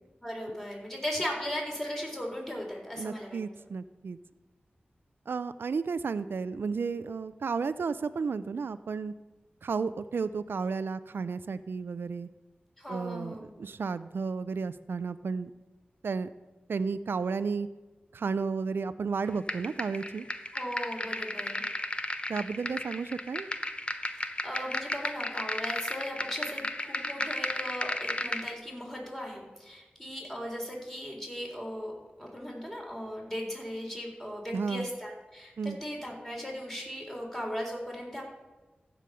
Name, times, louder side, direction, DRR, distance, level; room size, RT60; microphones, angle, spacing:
voice 1, 0.2-3.4 12.8-13.5 20.5-21.6 24.1-38.2, equal, 10° left, -2 dB, 4.0 m, -37 dB
voice 2, 3.0-4.2 5.3-9.1 9.6-12.3 12.9-15.5 16.0-16.3 16.7-17.7 18.1-20.3 22.3-23.5 34.5-34.9 35.6-35.8, right 5 dB, 85° right, 13 dB, 0.4 m, -32 dB
sound 1, 19.5-28.5, left 1 dB, 30° left, 0.9 m, -34 dB
15.0 x 5.1 x 6.8 m, 1.2 s
wide cardioid pair, 55°, 4 cm